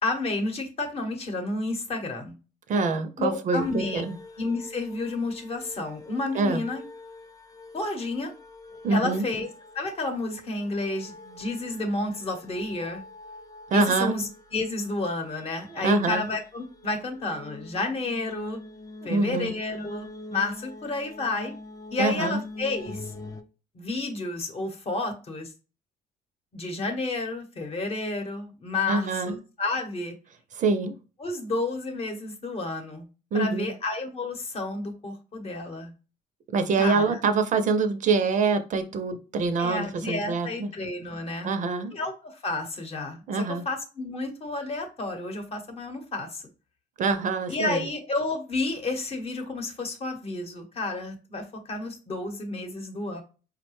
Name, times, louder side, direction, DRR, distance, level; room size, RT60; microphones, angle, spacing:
voice 1, 0.0-2.4 3.2-4.0 4.4-6.8 7.7-8.3 8.9-9.5 9.7-13.0 13.7-18.6 19.0-21.5 21.9-23.1 23.7-25.5 26.5-30.1 31.2-33.1 33.3-35.9 36.8-37.2 39.6-41.5 41.9-43.2 43.6-46.4 47.5-53.2, left 2 dB, 35° left, 5 dB, 0.9 m, -31 dB
voice 2, 2.7-4.2 6.3-6.6 8.8-9.3 13.7-14.2 15.7-16.2 19.1-19.5 22.0-22.4 28.9-29.4 30.5-30.9 33.3-33.7 36.5-40.7 41.4-41.9 43.3-43.6 47.0-47.8, right 4 dB, 50° right, 8 dB, 0.5 m, -25 dB
sound 1, 3.5-23.4, left 2 dB, 20° left, 0.4 m, -44 dB
4.7 x 2.1 x 3.0 m, 0.34 s
cardioid pair, 110°, 17 cm